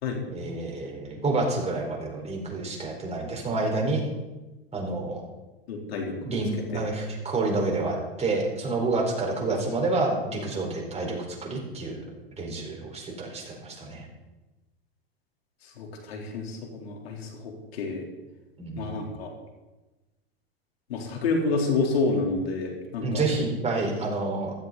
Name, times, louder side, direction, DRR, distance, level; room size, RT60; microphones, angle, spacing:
voice 1, 0.3-4.0 4.7-5.2 6.2-12.1 12.4-14.1 18.6-18.9 23.0-24.5, right 3 dB, 20° right, -1 dB, 4.8 m, -28 dB
voice 2, 5.7-6.1 6.7-6.8 15.8-18.0 18.8-19.3 20.9-23.3, left 3 dB, 80° left, 1 dB, 3.7 m, -29 dB
15.5 x 14.5 x 4.1 m, 1.1 s
hypercardioid pair, 105°, 30 cm